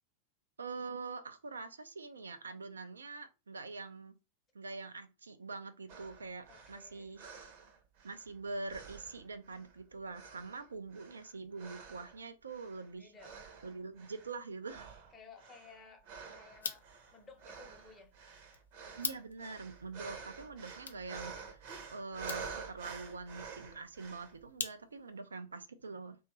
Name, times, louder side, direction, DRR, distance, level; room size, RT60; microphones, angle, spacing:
voice 1, 0.6-4.1 4.5-7.2 8.0-13.1 13.6-14.9 19.0-21.6 21.9-26.2, right 3 dB, 75° right, 0.4 m, -44 dB
sound 1, 5.9-8.3 8.7-9.8 10.1-12.2 12.5-12.9 13.2-14.4 14.6-24.4, right 5 dB, 45° right, 0.7 m, -49 dB
voice 2, 6.5-7.2 13.0-13.4 15.1-16.0 16.3-18.1, left 4 dB, 20° left, 0.8 m, -56 dB
sound 2, 16.5-25.2, left 5 dB, 75° left, 0.4 m, -47 dB
2.8 x 2.3 x 3.0 m
figure-of-eight pair, 90°, 0 cm